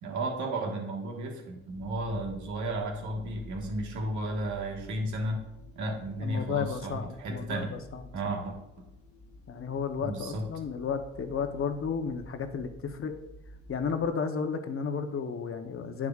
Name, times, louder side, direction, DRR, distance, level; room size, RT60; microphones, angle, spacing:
voice 1, 0.0-5.4 5.7-7.7 8.1-8.9 10.0-10.5, right 1 dB, 75° right, 1 dB, 1.5 m, -33 dB
sound 1, 1.7-14.0, left 1 dB, 80° left, 0.9 m, -51 dB
voice 2, 6.2-8.3 9.5-13.1 13.7-16.1, left 6 dB, 45° left, 7 dB, 0.8 m, -33 dB
11.0 x 4.8 x 2.4 m, 0.85 s
cardioid pair, 90°, 30 cm